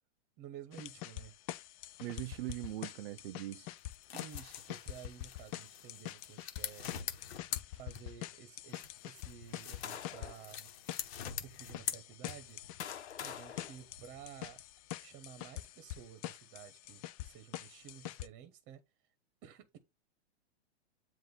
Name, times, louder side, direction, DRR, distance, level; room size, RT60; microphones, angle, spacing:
voice 1, 0.4-1.3 4.1-6.9 7.2-10.7 11.2-12.6 13.2-14.6 15.0-18.8 19.4-19.8, right 10 dB, 35° right, 1.1 m, -52 dB
sound 1, 0.7-18.3, left 15 dB, 35° left, 0.5 m, -46 dB
voice 2, 2.0-3.7, right 15 dB, 65° right, 0.4 m, -41 dB
sound 2, 3.8-8.3 8.7-12.7, left 9 dB, 65° left, 1.2 m, -44 dB
sound 3, 9.3-10.5 11.2-11.4 12.3-14.6, left 9 dB, 80° left, 1.0 m, -47 dB
7.7 x 2.6 x 5.5 m
hypercardioid pair, 135°, 33 cm